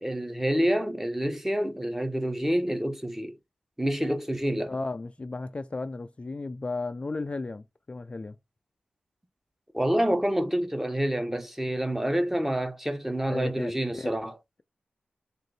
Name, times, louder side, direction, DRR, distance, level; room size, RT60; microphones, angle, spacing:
voice 1, 0.0-3.4 3.8-4.7 9.7-14.4, equal, 10° right, 0.8 m, -27 dB
voice 2, 4.7-8.4 13.3-14.1, left 3 dB, 35° left, 0.3 m, -34 dB
3.7 x 2.5 x 3.3 m
cardioid pair, 45°, 3 cm